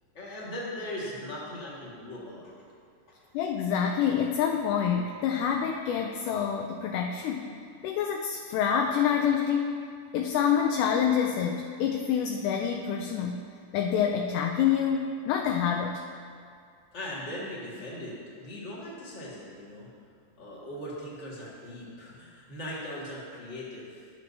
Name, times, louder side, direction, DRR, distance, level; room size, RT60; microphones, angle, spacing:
voice 1, 0.1-2.5 16.9-19.9 20.4-24.1, left 1 dB, 30° left, -7 dB, 1.4 m, -39 dB
voice 2, 3.3-7.5 7.8-9.8 10.1-13.4 13.7-16.0, left 8 dB, 80° left, 2 dB, 2.0 m, -27 dB
12.5 x 7.3 x 2.7 m, 2.2 s
omnidirectional pair, 3.7 m